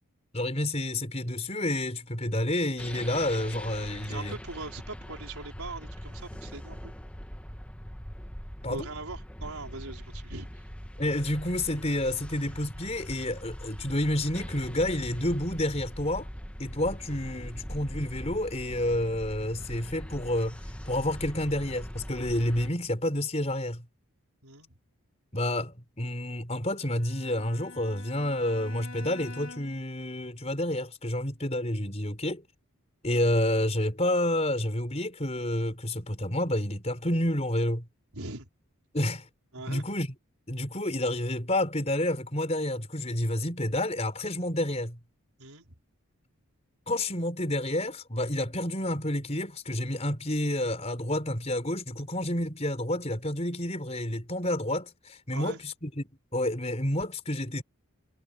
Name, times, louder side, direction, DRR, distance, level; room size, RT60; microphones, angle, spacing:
voice 1, 0.3-4.3 8.6-8.9 11.0-16.3 16.6-20.6 20.9-23.8 25.3-32.4 33.0-37.8 38.9-39.3 39.7-40.1 40.5-45.0 46.9-56.0 56.3-57.6, left 1 dB, 30° left, 5.1 m, -29 dB
sound 1, 2.8-22.7, equal, 5° left, 1.4 m, -41 dB
voice 2, 4.1-6.9 8.7-10.6 24.4-24.7 38.1-38.5 39.5-39.9 45.4-45.7 55.3-55.6, right 3 dB, 80° right, 4.9 m, -41 dB
Bowed string instrument, 26.8-29.9, left 3 dB, 55° left, 4.5 m, -46 dB
head